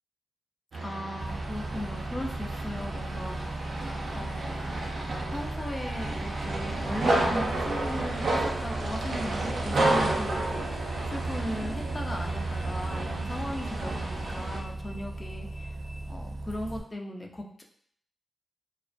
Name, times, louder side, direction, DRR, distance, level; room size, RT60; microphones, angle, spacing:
sound 1, 0.7-14.6, right 2 dB, 70° right, 0.4 m, -31 dB
voice 1, 0.8-3.6 4.1-4.7 5.3-10.7 11.0-15.7 16.1-17.6, left 1 dB, 30° left, 1 dB, 0.3 m, -37 dB
Bus, 1.2-16.8, right 2 dB, 30° right, 0.7 m, -37 dB
2.3 x 2.1 x 2.5 m, 0.63 s
cardioid pair, 65°, 0 cm